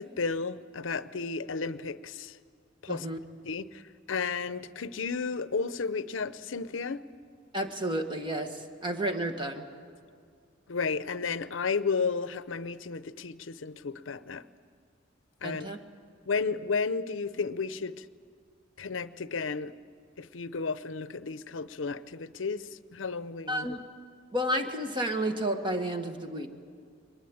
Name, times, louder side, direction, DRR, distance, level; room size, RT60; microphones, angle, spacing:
voice 1, 0.0-2.4 2.8-3.1 3.4-3.8 4.1-7.0 10.7-14.4 15.4-15.7 16.3-18.0 18.8-19.7 20.2-23.8, left 4 dB, 80° left, 14 dB, 0.7 m, -33 dB
voice 2, 2.9-3.2 7.5-9.6 15.4-15.8 23.5-23.8 24.3-26.5, right 1 dB, 25° right, 5 dB, 1.6 m, -31 dB
23.0 x 20.5 x 8.7 m, 2.2 s
head